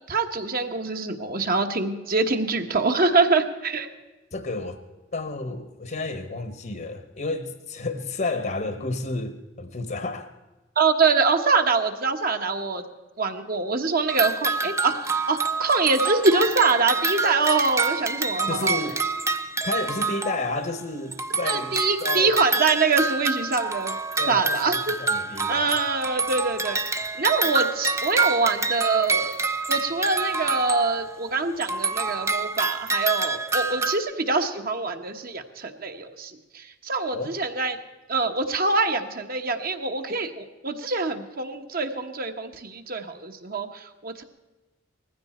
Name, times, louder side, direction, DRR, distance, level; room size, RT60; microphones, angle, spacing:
voice 1, 0.1-3.9 10.8-12.8 13.2-18.8 21.4-24.0 24.3-25.0 25.5-26.8 27.2-29.4 29.7-37.8 38.1-44.2, right 4 dB, 50° right, 1.3 m, -24 dB
voice 2, 4.3-4.8 5.1-10.3 18.5-19.0 19.6-22.5 24.2-25.8 37.1-37.4, left 2 dB, 50° left, 1.1 m, -31 dB
sound 1, 14.1-20.8 21.1-31.3 31.6-34.0, right 4 dB, 15° right, 0.6 m, -27 dB
19.5 x 15.5 x 4.4 m
head